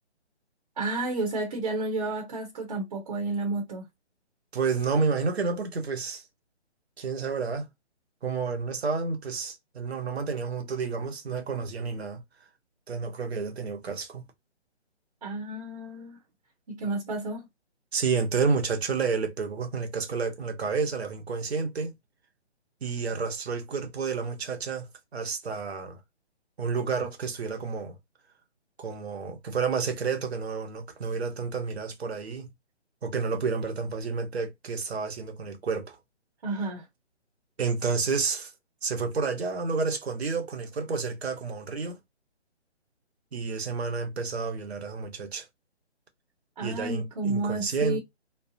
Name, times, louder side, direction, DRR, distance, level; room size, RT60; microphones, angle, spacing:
voice 1, 0.8-3.8 15.2-16.2 16.7-17.5 36.4-36.9 46.6-48.0, right 2 dB, 35° right, 0.9 m, -31 dB
voice 2, 4.5-6.2 7.0-7.7 8.2-12.2 12.9-14.2 17.9-21.9 22.8-26.0 26.6-27.9 28.8-32.5 33.0-36.0 37.6-38.5 38.8-42.0 43.3-45.5 46.6-48.0, right 5 dB, 65° right, 1.0 m, -30 dB
3.2 x 2.0 x 2.6 m
hypercardioid pair, 160°, 34 cm